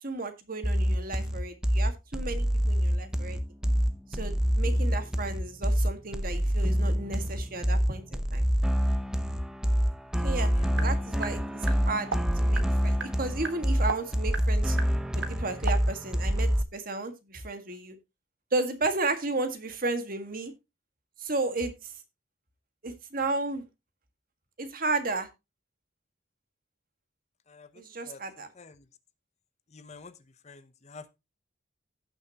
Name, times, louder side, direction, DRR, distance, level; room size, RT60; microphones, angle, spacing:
voice 1, 0.0-3.4 4.1-8.5 10.2-10.5 10.8-12.1 12.4-14.8 15.1-18.0 18.5-20.5 21.2-21.9 22.8-23.6 24.6-25.3 27.8-28.5, right 3 dB, 45° right, 1.7 m, -33 dB
sound 1, 0.6-16.6, equal, 5° right, 0.7 m, -26 dB
sound 2, 10.3-15.8, right 4 dB, 65° right, 1.6 m, -39 dB
voice 2, 10.6-10.9 27.5-27.7 28.1-28.2 28.6-28.7 29.7-30.1 30.4-31.1, left 3 dB, 35° left, 0.8 m, -46 dB
16.5 x 6.4 x 2.9 m
head